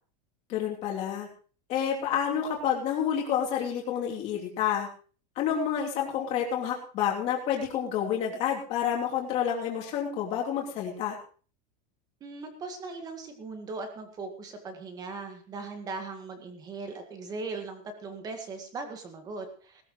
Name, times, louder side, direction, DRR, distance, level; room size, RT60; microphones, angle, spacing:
voice 1, 0.5-1.3 1.7-4.9 5.3-11.2, left 9 dB, 35° left, -1 dB, 3.2 m, -29 dB
voice 2, 12.2-19.8, right 3 dB, 20° right, 6 dB, 1.8 m, -39 dB
19.5 x 13.5 x 3.2 m, 0.41 s
supercardioid pair, 175°, 21 cm